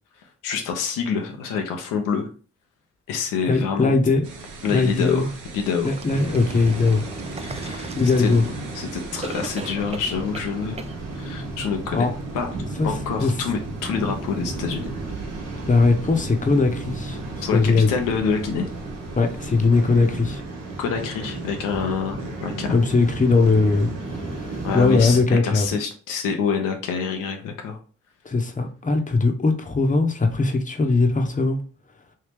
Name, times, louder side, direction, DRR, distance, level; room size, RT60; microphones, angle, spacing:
voice 1, 0.4-2.3 3.1-3.9 4.6-5.3 5.5-5.9 7.4-7.9 8.2-10.8 11.1-12.1 12.3-12.5 12.8-14.9 17.4-17.6 17.9-18.7 20.8-22.7 24.6-27.8, left 6 dB, 85° left, 0.6 m, -27 dB
voice 2, 3.5-4.2 4.6-5.3 5.8-7.0 8.0-8.4 11.9-12.1 12.8-12.9 13.2-13.3 15.7-17.9 19.2-20.4 22.7-23.9 24.2-25.7 28.2-31.6, left 3 dB, 25° left, 0.8 m, -20 dB
sound 1, 4.2-24.0, right 2 dB, 80° right, 0.8 m, -41 dB
sound 2, 5.9-8.8 9.2-10.5 10.8-10.9, right 4 dB, 20° right, 0.4 m, -39 dB
Waves surf, 6.1-25.2, right 2 dB, 55° right, 1.3 m, -34 dB
3.2 x 2.7 x 3.4 m
hypercardioid pair, 40°, 31 cm